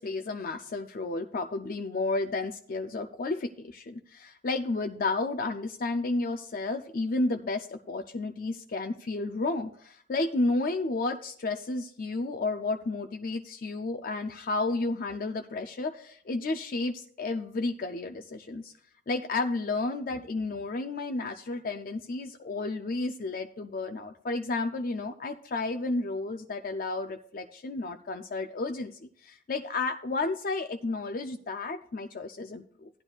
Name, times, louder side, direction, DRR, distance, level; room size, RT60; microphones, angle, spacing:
voice 1, 0.0-18.7 19.1-32.9, left 3 dB, 50° left, 6 dB, 0.4 m, -32 dB
15.0 x 9.8 x 2.4 m, 0.62 s
head